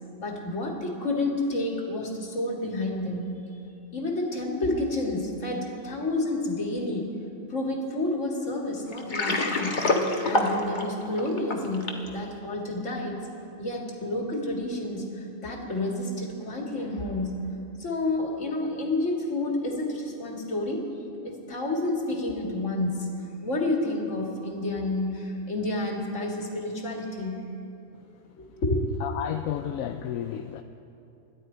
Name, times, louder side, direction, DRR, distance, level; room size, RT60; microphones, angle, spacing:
voice 1, 0.2-3.3 3.9-7.1 7.5-9.8 10.2-13.2 13.6-17.3 17.8-20.9 21.2-23.1 23.4-27.4 28.4-28.8, left 2 dB, 55° left, 0 dB, 2.4 m, -29 dB
Water, 8.9-12.1, left 2 dB, 35° left, 1.4 m, -26 dB
voice 2, 29.0-30.6, left 10 dB, 70° left, 7 dB, 1.0 m, -32 dB
27.0 x 12.0 x 4.5 m, 2.8 s
omnidirectional pair, 1.5 m